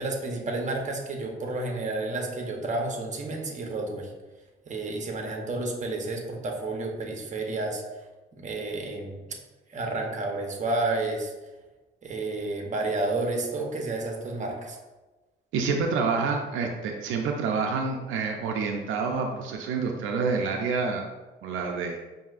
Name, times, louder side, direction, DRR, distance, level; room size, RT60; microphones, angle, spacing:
voice 1, 0.0-4.1 4.7-7.8 8.3-9.2 9.7-11.3 12.0-14.8, right 2 dB, 40° right, 2 dB, 0.8 m, -30 dB
voice 2, 15.5-21.1 21.4-22.0, right 4 dB, 80° right, 2 dB, 0.4 m, -28 dB
5.5 x 2.6 x 2.4 m, 1.2 s
cardioid pair, 90°, 20 cm